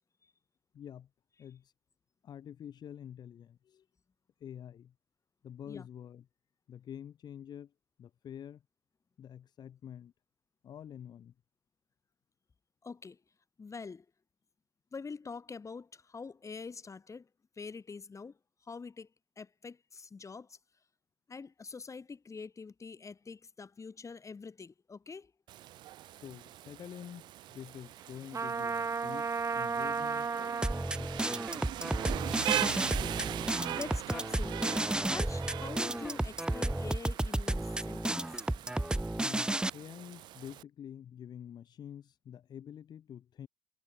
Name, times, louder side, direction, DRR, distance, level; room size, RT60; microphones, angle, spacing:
voice 1, 0.7-1.1 1.4-1.7 2.2-3.8 4.4-4.9 5.4-6.3 6.7-7.7 8.0-8.6 9.2-10.1 10.6-11.3 26.2-30.3 31.0-31.8 39.2-43.5, left 9 dB, 60° left, 1.6 m, -47 dB
voice 2, 12.8-13.2 13.6-14.0 14.9-17.3 17.6-19.1 19.4-20.6 21.3-25.3 32.9-33.2 33.6-38.3, left 4 dB, 40° left, 4.9 m, -45 dB
Rain, 25.5-40.6, right 14 dB, 70° right, 1.7 m, -41 dB
Trumpet, 28.3-30.9, right 5 dB, 40° right, 1.0 m, -33 dB
sound 1, 30.6-39.7, right 1 dB, 10° right, 0.7 m, -32 dB
hypercardioid pair, 40°, 8 cm